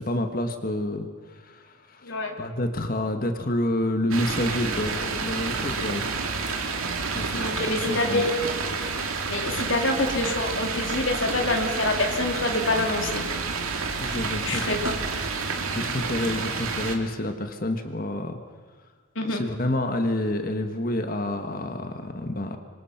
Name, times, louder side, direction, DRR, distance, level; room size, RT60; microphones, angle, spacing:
voice 1, 0.0-6.0 7.1-7.4 7.7-8.2 14.0-14.8 15.7-18.4 19.3-22.6, left 1 dB, 40° left, 6 dB, 1.6 m, -28 dB
voice 2, 2.0-2.3 7.4-8.3 9.3-13.2 14.4-14.9 19.1-19.4, left 2 dB, 65° left, 3 dB, 3.0 m, -26 dB
sound 1, 4.1-17.0, right 4 dB, 85° right, 2.4 m, -29 dB
26.0 x 24.5 x 5.9 m, 1.5 s
head